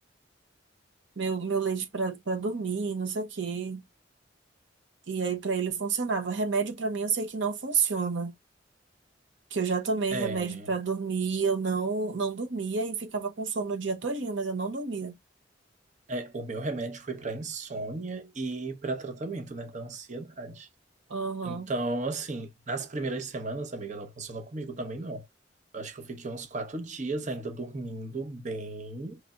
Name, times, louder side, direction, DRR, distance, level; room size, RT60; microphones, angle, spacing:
voice 1, 1.2-3.8 5.1-8.3 9.5-15.1 21.1-21.7, right 5 dB, 70° right, 0.8 m, -30 dB
voice 2, 10.1-10.7 16.1-20.7 21.4-25.3 25.7-29.2, right 2 dB, 40° right, 0.8 m, -35 dB
5.1 x 3.3 x 2.3 m
head